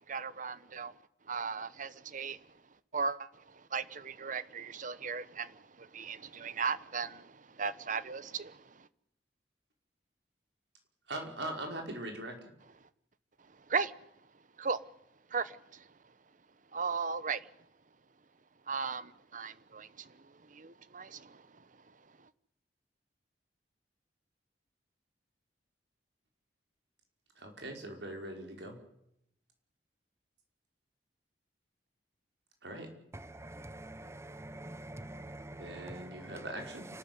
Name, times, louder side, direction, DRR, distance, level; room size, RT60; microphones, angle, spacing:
voice 1, 0.1-0.9 1.3-2.4 2.9-3.3 3.7-7.3 7.6-8.6 13.7-13.9 14.6-14.8 15.3-15.6 16.7-17.5 18.7-20.1 20.5-21.4, right 5 dB, 45° right, 1.0 m, -36 dB
voice 2, 11.1-12.4 27.4-28.8 32.6-32.9 35.6-36.9, right 1 dB, 75° right, 5.6 m, -41 dB
voice 3, 33.5-35.5 35.8-35.9, right 1 dB, 15° right, 1.0 m, -45 dB
28.5 x 13.0 x 9.6 m
head